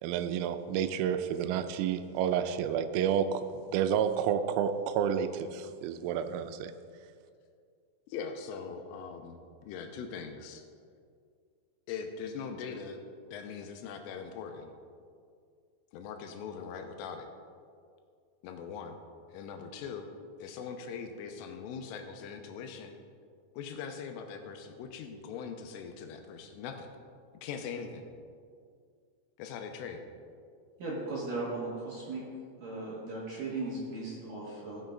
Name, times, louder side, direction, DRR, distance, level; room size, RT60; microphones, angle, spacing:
voice 1, 0.0-3.4 3.7-6.7, right 8 dB, 85° right, 10 dB, 3.2 m, -30 dB
voice 2, 8.1-10.6 11.9-13.0 13.3-14.7 15.9-17.3 18.4-19.0 19.3-20.1 20.4-23.0 23.6-26.9 27.4-28.1 29.4-30.0, left 6 dB, 85° left, 5 dB, 3.2 m, -41 dB
voice 3, 30.8-32.2 32.6-34.8, right 2 dB, 65° right, -6 dB, 2.2 m, -37 dB
16.0 x 6.4 x 3.8 m, 2.2 s
omnidirectional pair, 5.9 m